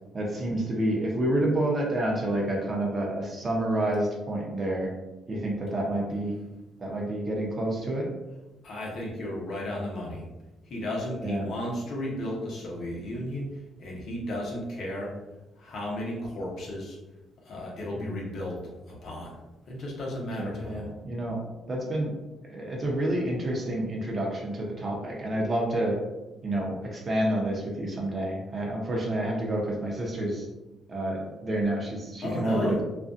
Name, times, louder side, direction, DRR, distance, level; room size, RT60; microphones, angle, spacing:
voice 1, 0.1-4.9 5.3-6.4 6.8-8.0 11.2-11.5 17.9-18.2 20.4-21.4 21.7-22.1 22.5-26.0 26.4-30.5 30.9-32.8, right 1 dB, 35° right, -2 dB, 0.7 m, -29 dB
voice 2, 8.6-10.2 10.7-13.5 13.8-15.1 15.6-17.0 17.4-18.6 18.9-19.4 19.7-20.9 32.2-32.8, left 1 dB, 65° left, -3 dB, 0.8 m, -34 dB
2.5 x 2.3 x 2.5 m, 1.0 s
cardioid pair, 90°, 0 cm